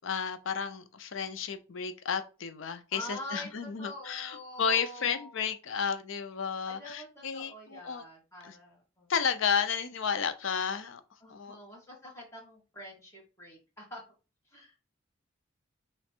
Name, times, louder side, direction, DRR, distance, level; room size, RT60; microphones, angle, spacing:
voice 1, 0.0-8.0 8.4-8.6 9.1-11.0 11.3-11.6, left 6 dB, 75° left, 0.5 m, -32 dB
voice 2, 2.9-5.5 6.6-9.1 11.2-14.0 14.5-14.8, equal, 15° left, 1.7 m, -45 dB
3.2 x 3.1 x 4.4 m
head